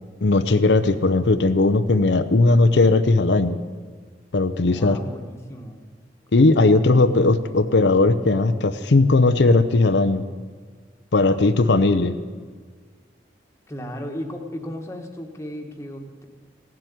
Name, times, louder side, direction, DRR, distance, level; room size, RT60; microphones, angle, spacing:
voice 1, 0.2-3.6 4.3-5.0 6.3-10.2 11.1-12.2, left 3 dB, 85° left, 10 dB, 0.6 m, -18 dB
voice 2, 4.7-5.8 13.7-16.3, equal, 15° left, 3 dB, 1.3 m, -35 dB
16.5 x 7.6 x 9.4 m, 1.5 s
head